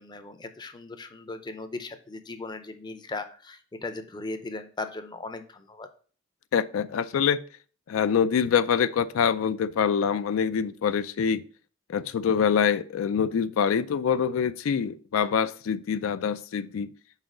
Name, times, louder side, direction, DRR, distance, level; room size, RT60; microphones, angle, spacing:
voice 1, 0.0-5.9, left 3 dB, 20° left, 0.5 m, -38 dB
voice 2, 6.5-7.4 7.9-11.4 11.9-16.9, left 7 dB, 85° left, 0.4 m, -25 dB
4.7 x 4.1 x 4.9 m
head